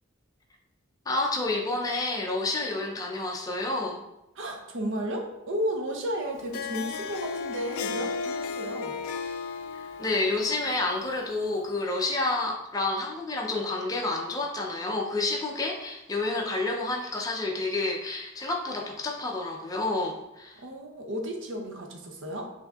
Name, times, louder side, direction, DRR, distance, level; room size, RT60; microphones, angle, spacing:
voice 1, 1.1-4.0 9.7-20.6, left 2 dB, 15° left, -1 dB, 0.5 m, -29 dB
voice 2, 4.4-8.9 20.6-22.5, equal, 65° right, 2 dB, 0.7 m, -33 dB
Harp, 6.3-11.8, left 5 dB, 90° left, 0.3 m, -35 dB
5.9 x 2.7 x 2.3 m, 0.91 s
head